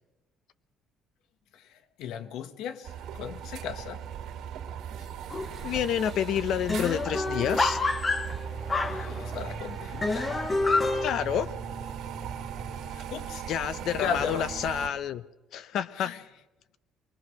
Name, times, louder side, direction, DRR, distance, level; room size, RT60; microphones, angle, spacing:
voice 1, 1.5-4.0 8.9-10.3 12.9-13.4 13.9-14.5 16.0-16.2, left 7 dB, 75° left, 1.3 m, -36 dB
sound 1, 2.8-14.9, right 8 dB, 65° right, 2.4 m, -38 dB
sound 2, 5.3-5.7 6.0-6.1 6.4-9.5 10.0-11.1, left 3 dB, 15° left, 0.9 m, -28 dB
voice 2, 5.6-7.8 11.0-11.5 13.5-15.2 15.5-16.1, left 9 dB, 55° left, 0.7 m, -29 dB
23.5 x 20.5 x 6.3 m
cardioid pair, 165°, 0 cm